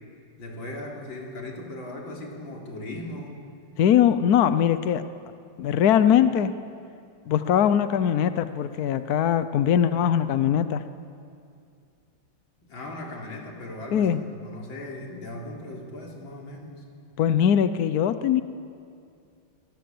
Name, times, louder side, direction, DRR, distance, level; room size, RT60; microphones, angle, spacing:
voice 1, 0.4-3.4 12.6-16.8, left 1 dB, 90° left, -1 dB, 4.4 m, -38 dB
voice 2, 3.8-5.0 5.6-6.5 7.3-10.8 13.9-14.2 17.2-18.4, left 9 dB, 60° left, 12 dB, 1.1 m, -21 dB
25.0 x 19.5 x 7.9 m, 2.4 s
omnidirectional pair, 2.1 m